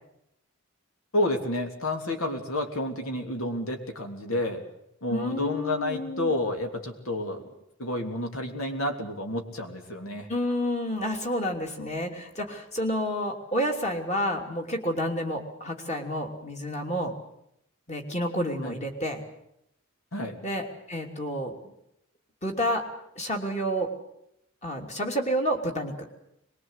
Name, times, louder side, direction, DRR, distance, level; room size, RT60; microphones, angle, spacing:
voice 1, 1.1-4.6 5.0-7.4 7.8-10.3 18.6-18.7 20.1-20.4, left 1 dB, 85° left, 4 dB, 3.2 m, -30 dB
voice 2, 5.1-6.3 10.3-17.1 17.9-19.2 20.4-21.6 22.4-22.9 23.2-23.9 24.6-26.1, equal, 30° left, 3 dB, 3.0 m, -29 dB
23.5 x 21.5 x 8.2 m, 0.78 s
head